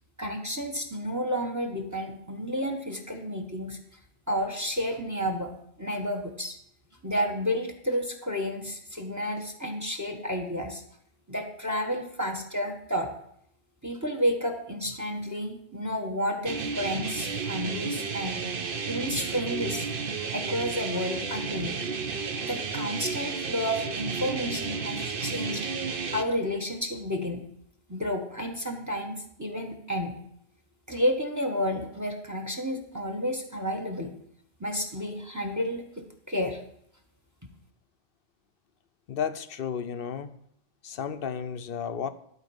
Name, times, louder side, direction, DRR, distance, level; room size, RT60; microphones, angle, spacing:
voice 1, 0.2-3.8 4.3-5.5 5.8-6.6 7.0-10.8 11.3-13.1 13.8-18.4 18.8-19.9 20.3-21.8 22.4-25.7 26.1-27.4 27.9-30.1 30.9-34.1 34.6-36.6, equal, 15° right, 4 dB, 1.1 m, -31 dB
sound 1, 16.5-26.2, right 5 dB, 55° right, 1.0 m, -32 dB
voice 2, 39.1-40.4 40.8-42.1, left 7 dB, 60° left, 10 dB, 0.8 m, -33 dB
12.0 x 4.6 x 7.0 m, 0.71 s
omnidirectional pair, 1.2 m